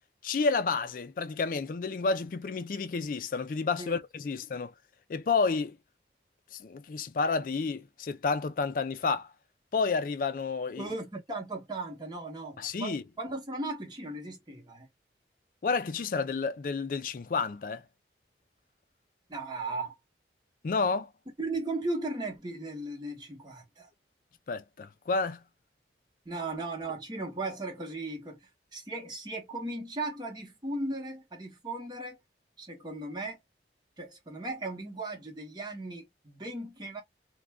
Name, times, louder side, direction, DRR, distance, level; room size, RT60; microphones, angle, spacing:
voice 1, 0.2-4.7 5.1-5.8 6.5-9.3 9.7-11.0 12.6-13.0 15.6-17.8 20.6-21.1 24.5-25.4, left 4 dB, 50° left, 0.4 m, -30 dB
voice 2, 10.8-14.9 19.3-20.0 21.4-23.9 26.2-28.4 28.7-32.2 32.6-33.4 34.0-37.0, right 2 dB, 25° right, 0.9 m, -37 dB
2.5 x 2.2 x 3.3 m
head